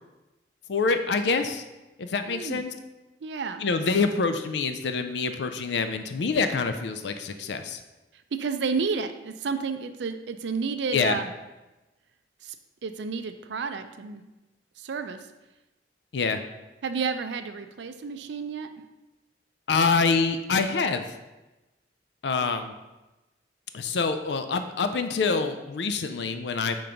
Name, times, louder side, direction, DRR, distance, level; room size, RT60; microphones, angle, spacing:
voice 1, 0.7-1.6 2.0-2.7 3.6-7.8 10.9-11.2 16.1-16.4 19.7-21.1 22.2-22.7 23.7-26.8, left 4 dB, 75° left, 8 dB, 0.4 m, -26 dB
voice 2, 2.3-2.6 3.2-3.6 8.3-11.3 12.4-12.6 12.8-14.2 14.8-15.3 16.8-18.7, right 5 dB, 80° right, 8 dB, 0.4 m, -31 dB
5.2 x 3.7 x 5.7 m, 1.1 s
head